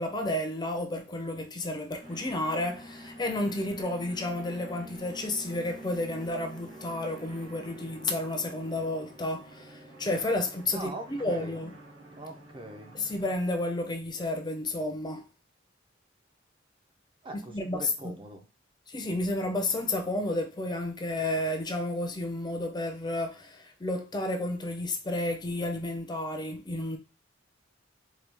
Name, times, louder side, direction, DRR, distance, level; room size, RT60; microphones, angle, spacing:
voice 1, 0.0-11.7 12.9-15.2 17.3-18.1 18.9-27.0, left 1 dB, 20° left, 0.6 m, -31 dB
sound 1, 2.0-13.4, right 1 dB, 70° right, 2.0 m, -48 dB
voice 2, 10.7-11.6 12.1-12.9 17.2-18.5, right 1 dB, 25° right, 0.6 m, -42 dB
4.7 x 2.3 x 3.3 m
head